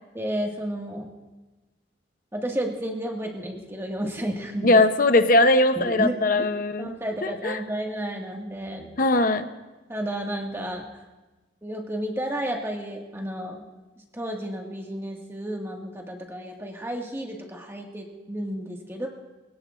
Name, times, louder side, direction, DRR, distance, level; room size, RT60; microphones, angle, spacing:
voice 1, 0.1-1.1 2.3-4.8 5.8-6.5 6.8-8.9 9.9-10.9 11.6-13.6 14.1-19.1, right 1 dB, 15° right, 0 dB, 1.9 m, -32 dB
voice 2, 4.6-6.9 7.2-7.6 9.0-9.5, left 2 dB, 50° left, 9 dB, 0.8 m, -20 dB
25.0 x 17.5 x 2.6 m, 1.2 s
head